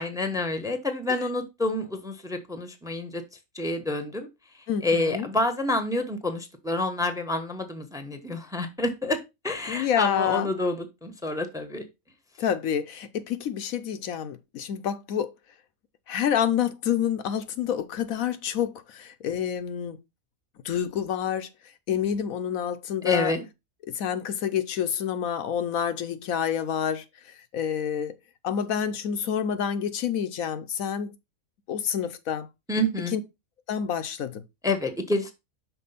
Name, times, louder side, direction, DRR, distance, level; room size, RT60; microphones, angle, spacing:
voice 1, 0.0-3.2 3.5-4.3 4.8-9.2 9.4-11.8 23.0-23.4 32.7-33.2 34.6-35.3, left 2 dB, 5° right, 0.9 m, -28 dB
voice 2, 4.7-5.3 9.7-10.5 12.4-15.3 16.1-20.0 20.6-21.5 21.9-23.3 23.9-27.0 27.5-28.1 28.4-31.1 31.7-32.5 33.1-33.2 33.7-34.5, left 8 dB, 75° left, 1.1 m, -28 dB
6.0 x 4.2 x 5.6 m
omnidirectional pair, 1.5 m